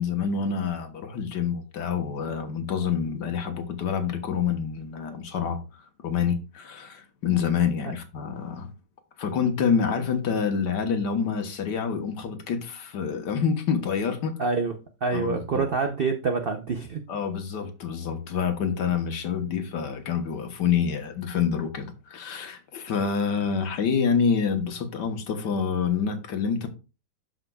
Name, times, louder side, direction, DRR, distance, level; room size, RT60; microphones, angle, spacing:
voice 1, 0.0-5.6 6.0-8.7 9.2-14.4 15.1-15.7 17.1-26.7, left 6 dB, 75° left, 1.7 m, -27 dB
voice 2, 14.4-14.7 15.0-17.0, right 4 dB, 65° right, 0.5 m, -26 dB
12.5 x 5.1 x 2.3 m
omnidirectional pair, 1.9 m